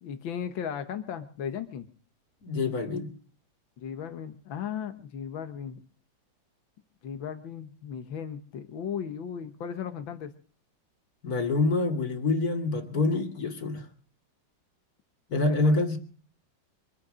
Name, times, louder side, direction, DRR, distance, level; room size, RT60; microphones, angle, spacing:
voice 1, 0.0-1.9 3.8-5.8 7.0-10.3 15.3-15.8, left 8 dB, 85° left, 8 dB, 2.0 m, -36 dB
voice 2, 2.4-3.1 11.2-13.9 15.3-16.0, left 3 dB, 50° left, 6 dB, 2.7 m, -26 dB
24.0 x 9.3 x 6.2 m, 0.43 s
omnidirectional pair, 2.1 m